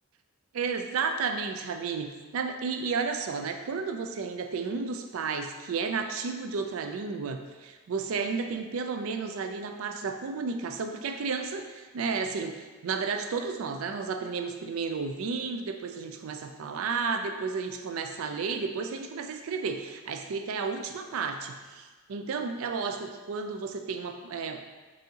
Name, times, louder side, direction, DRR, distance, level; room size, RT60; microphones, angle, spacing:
voice 1, 0.5-24.6, right 5 dB, 80° right, 6 dB, 0.4 m, -32 dB
4.0 x 3.7 x 2.8 m, 1.3 s
head